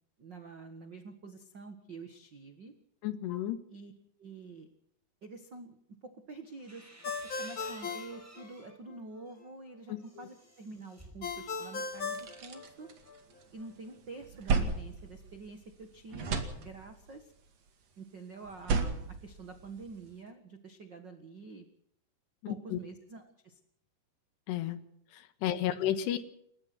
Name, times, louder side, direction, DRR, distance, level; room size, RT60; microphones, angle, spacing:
voice 1, 0.2-2.7 3.7-3.9 4.2-4.7 5.2-5.8 6.0-6.9 7.4-12.9 13.5-17.3 18.0-21.6 22.5-23.6 25.8-26.0, right 3 dB, 75° right, 7 dB, 1.0 m, -47 dB
voice 2, 3.0-3.6 9.9-10.0 22.4-22.8 24.5-24.8 25.1-26.2, left 12 dB, 80° left, 12 dB, 3.4 m, -32 dB
sound 1, 6.4-8.8 9.2-12.1, right 1 dB, 5° right, 5.0 m, -55 dB
Ringtone, 7.0-9.0 11.2-13.2, left 4 dB, 35° left, 2.3 m, -38 dB
sound 2, 11.5-11.6 11.9-13.6 14.0-15.8 16.1-17.2 18.4-20.1, right 4 dB, 45° right, 2.9 m, -34 dB
30.0 x 15.0 x 6.0 m, 0.70 s
omnidirectional pair, 4.9 m